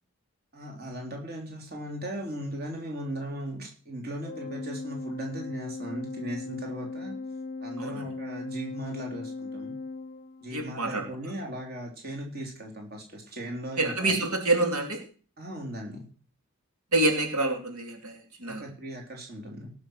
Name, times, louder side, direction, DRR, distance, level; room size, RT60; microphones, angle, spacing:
voice 1, 0.5-7.1 7.6-9.7 10.4-14.2 15.4-16.1 18.4-19.7, right 1 dB, 45° right, 1 dB, 3.4 m, -38 dB
Organ, 4.2-10.8, left 3 dB, 35° left, 0.6 m, -38 dB
voice 2, 10.5-11.0 13.8-15.0 16.9-18.6, right 2 dB, 85° right, 3 dB, 2.7 m, -27 dB
18.0 x 6.6 x 6.3 m, 0.41 s
head